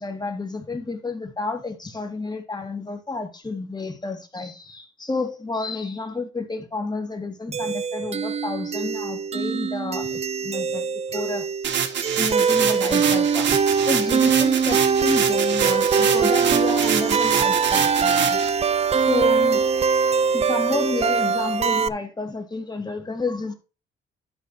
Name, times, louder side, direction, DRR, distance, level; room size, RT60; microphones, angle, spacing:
voice 1, 0.0-11.4 12.2-18.5 18.9-19.7 20.3-23.5, left 3 dB, 20° left, 2.5 m, -30 dB
sound 1, 7.5-21.9, right 6 dB, 30° right, 0.5 m, -22 dB
sound 2, 11.6-18.5, right 8 dB, 65° right, 1.7 m, -26 dB
12.5 x 5.2 x 4.2 m
cardioid pair, 90°, 20 cm